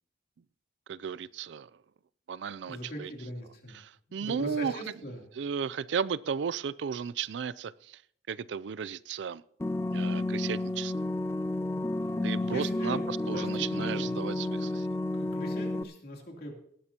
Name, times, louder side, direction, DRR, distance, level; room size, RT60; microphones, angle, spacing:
voice 1, 0.9-1.7 2.3-3.1 3.7-4.7 5.3-8.0 8.3-9.4 9.9-10.9 12.2-14.9, right 6 dB, 70° right, 20 dB, 0.4 m, -34 dB
voice 2, 2.7-3.8 4.1-5.2 12.4-14.7 15.1-16.5, equal, 55° left, 1 dB, 3.0 m, -41 dB
sound 1, 9.6-15.8, left 2 dB, 15° left, 0.4 m, -31 dB
18.5 x 12.0 x 2.9 m, 0.65 s
head